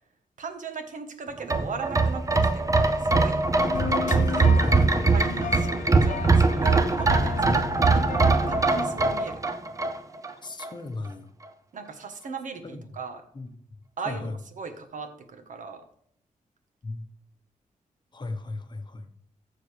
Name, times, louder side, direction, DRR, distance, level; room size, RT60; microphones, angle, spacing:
voice 1, 0.4-3.4 4.4-8.1 8.5-9.4 11.7-13.2 14.0-14.3 14.6-15.8, right 5 dB, 70° right, 7 dB, 1.2 m, -37 dB
sound 1, 1.4-10.3 10.6-10.7, right 3 dB, 25° right, 0.6 m, -22 dB
sound 2, 3.6-8.8, left 7 dB, 65° left, 0.6 m, -34 dB
voice 2, 4.6-5.0 10.4-11.3 12.6-12.8 13.3-13.5 14.0-14.3 16.8-17.1 18.1-19.1, left 3 dB, 35° left, 7 dB, 1.0 m, -35 dB
14.0 x 6.5 x 3.4 m, 0.65 s
wide cardioid pair, 125°, 14 cm